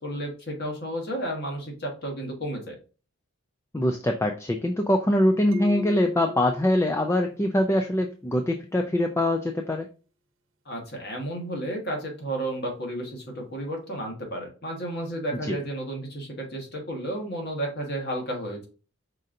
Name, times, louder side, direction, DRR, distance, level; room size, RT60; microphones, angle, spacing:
voice 1, 0.0-2.8 10.6-18.7, right 1 dB, 50° left, 2 dB, 1.4 m, -32 dB
voice 2, 3.7-9.9 15.5-15.6, left 1 dB, 15° left, 4 dB, 0.3 m, -23 dB
sound 1, 5.5-8.1, equal, 70° right, 0.9 m, -38 dB
5.3 x 3.8 x 2.6 m, 0.35 s
head